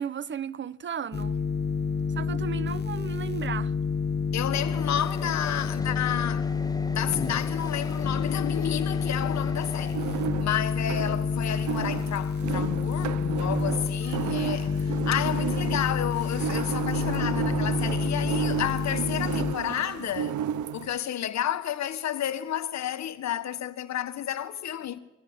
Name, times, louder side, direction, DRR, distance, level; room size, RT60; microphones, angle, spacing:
voice 1, 0.0-1.4 2.1-3.7 5.2-5.4, right 8 dB, 40° right, 0.8 m, -35 dB
sound 1, 1.1-19.5, left 5 dB, 35° left, 1.3 m, -29 dB
voice 2, 4.3-20.4 20.7-25.0, left 10 dB, 65° left, 1.4 m, -31 dB
sound 2, 4.5-10.0, left 2 dB, 10° left, 1.6 m, -41 dB
sound 3, 9.7-21.0, right 11 dB, 75° right, 0.7 m, -33 dB
23.0 x 14.5 x 8.0 m
cardioid pair, 90°, 30 cm